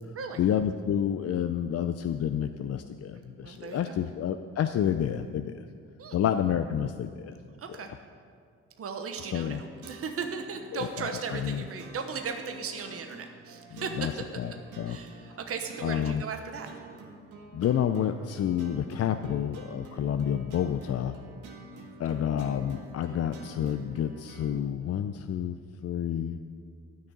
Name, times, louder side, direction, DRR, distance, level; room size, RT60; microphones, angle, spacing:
voice 1, 0.4-5.6 6.1-7.4 9.2-9.6 10.7-11.0 11.4-11.6 13.7-14.1 14.4-14.5 14.8-15.0 15.8-16.2 17.5-21.2 22.0-25.6 25.8-26.4, left 9 dB, 55° left, 8 dB, 0.6 m, -29 dB
voice 2, 3.4-4.0 6.0-6.2 7.6-7.9 8.8-14.1 14.9-16.7 21.7-21.9, right 5 dB, 50° right, 5 dB, 1.1 m, -37 dB
sound 1, 9.2-24.6, right 2 dB, 85° right, 1.8 m, -48 dB
12.5 x 6.5 x 9.7 m, 2.2 s
cardioid pair, 90°, 30 cm